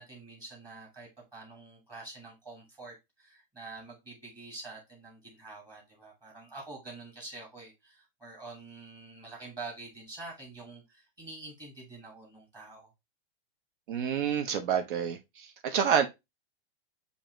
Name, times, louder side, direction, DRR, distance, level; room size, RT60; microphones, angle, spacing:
voice 1, 0.0-12.9, right 3 dB, 15° right, 1.3 m, -46 dB
voice 2, 13.9-16.1, right 8 dB, 55° right, 0.7 m, -28 dB
7.0 x 2.6 x 2.9 m
supercardioid pair, 155°, 31 cm